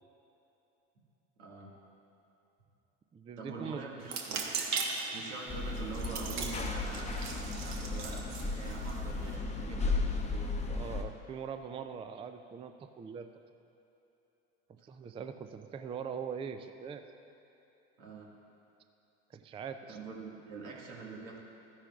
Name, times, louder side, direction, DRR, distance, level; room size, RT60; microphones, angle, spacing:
voice 1, 1.4-1.7 3.4-4.4 5.1-10.6 18.0-18.3 19.9-21.4, right 4 dB, 80° right, -3 dB, 1.9 m, -45 dB
voice 2, 3.1-3.8 10.7-13.3 14.7-17.1 19.3-20.0, right 6 dB, 15° right, 8 dB, 0.3 m, -42 dB
sound 1, 4.0-9.4, right 4 dB, 50° right, 1.2 m, -39 dB
sound 2, 5.5-11.0, left 3 dB, 20° left, 0.9 m, -35 dB
13.0 x 9.9 x 2.4 m, 2.9 s
hypercardioid pair, 80°, 34 cm